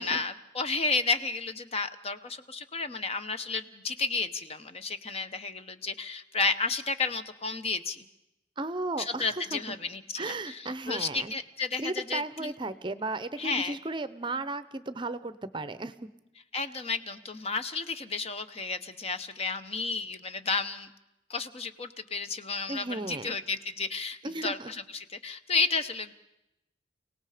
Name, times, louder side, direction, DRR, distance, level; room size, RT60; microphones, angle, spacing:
voice 1, 0.0-8.0 9.0-12.5 13.4-13.7 16.5-20.9 21.3-26.1, left 4 dB, 35° left, 10 dB, 0.9 m, -32 dB
voice 2, 8.6-9.8 10.2-11.3 11.8-15.9 22.7-23.4 24.2-24.7, right 2 dB, 25° right, 14 dB, 0.7 m, -35 dB
29.5 x 18.0 x 5.0 m, 0.89 s
head